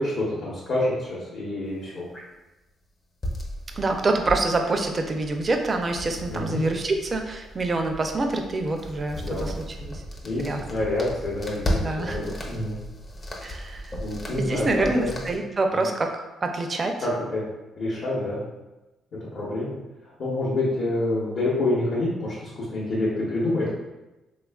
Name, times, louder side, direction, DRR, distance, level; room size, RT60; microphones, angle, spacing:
voice 1, 0.0-2.1 6.3-6.6 9.2-9.5 10.2-12.8 14.0-14.7 15.0-15.2 15.7-15.8 17.0-17.4 17.8-18.4 19.2-19.7 20.2-23.7, left 2 dB, 60° left, -8 dB, 0.8 m, -27 dB
sound 1, 3.2-15.4, equal, 35° left, 0.5 m, -35 dB
voice 2, 3.7-9.5 9.8-10.0 10.4-10.6 11.8-12.2 13.4-13.9 14.4-17.0, right 2 dB, 35° right, 4 dB, 0.4 m, -26 dB
3.3 x 2.3 x 2.3 m, 1.0 s
cardioid pair, 90°, 0 cm